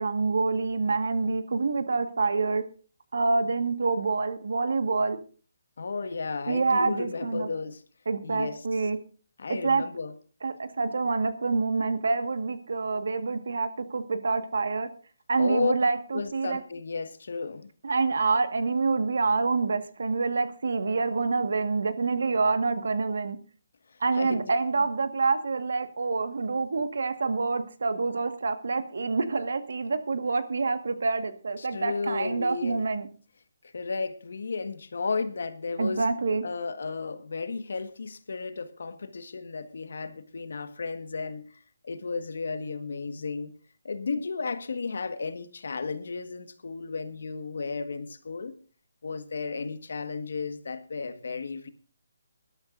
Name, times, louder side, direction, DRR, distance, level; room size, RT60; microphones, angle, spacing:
voice 1, 0.0-2.6 3.1-5.2 6.5-7.5 8.0-9.0 9.6-9.8 10.4-14.9 15.3-16.6 17.8-23.4 24.0-33.1 35.8-36.4, right 4 dB, 75° right, 1.6 m, -27 dB
voice 2, 5.8-7.8 8.2-8.6 9.4-10.1 15.4-15.7 16.1-17.7 24.1-24.5 31.6-32.8 33.7-36.0 36.4-41.5 41.8-43.5 43.8-48.5 49.0-51.7, left 4 dB, 70° left, 1.5 m, -33 dB
21.0 x 12.0 x 2.6 m
hypercardioid pair, 160°, 0 cm